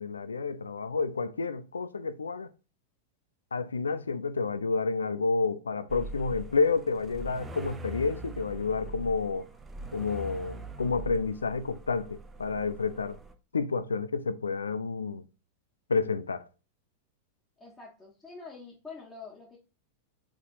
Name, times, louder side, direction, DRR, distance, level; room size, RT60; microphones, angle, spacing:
voice 1, 0.0-2.5 3.5-9.5 9.9-13.2 13.5-15.2 15.9-16.4, left 4 dB, 75° left, 0.4 m, -30 dB
sound 1, 5.9-13.3, right 2 dB, 15° right, 0.6 m, -42 dB
voice 2, 17.6-19.6, left 4 dB, 10° left, 1.5 m, -46 dB
4.6 x 4.1 x 2.6 m
figure-of-eight pair, 90°, 0 cm